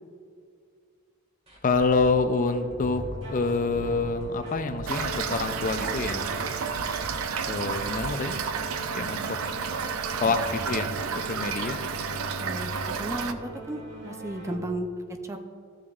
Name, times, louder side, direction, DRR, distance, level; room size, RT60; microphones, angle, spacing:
sound 1, 1.5-9.2 9.5-9.6 10.0-10.1, right 1 dB, 30° right, 1.8 m, -42 dB
voice 1, 1.6-3.0 3.3-6.4 7.4-8.3 8.9-9.4 10.2-11.8, left 4 dB, 40° left, 9 dB, 0.5 m, -27 dB
sound 2, 2.8-14.6, equal, 60° right, 1.6 m, -41 dB
Toilet flush / Fill (with liquid), 4.9-13.3, right 6 dB, 90° right, 0.5 m, -31 dB
voice 2, 12.3-14.9 15.2-15.4, right 1 dB, 15° right, 5 dB, 0.5 m, -34 dB
14.5 x 7.0 x 2.4 m, 2.2 s
head